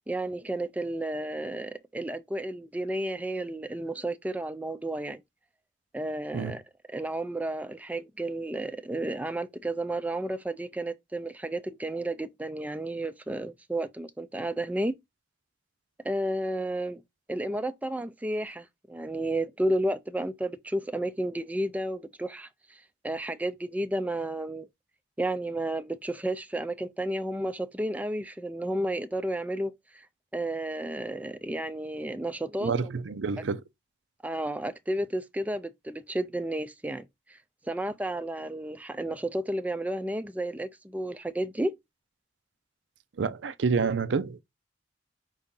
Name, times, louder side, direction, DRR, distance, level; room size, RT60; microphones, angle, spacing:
voice 1, 0.1-5.2 5.9-6.6 6.9-15.0 16.0-17.0 17.3-24.7 25.2-30.1 30.3-32.9 34.2-37.4 37.6-41.7, right 1 dB, 10° right, 0.4 m, -32 dB
voice 2, 32.6-33.6 43.2-44.4, right 5 dB, 85° right, 0.5 m, -28 dB
4.8 x 2.7 x 3.6 m
head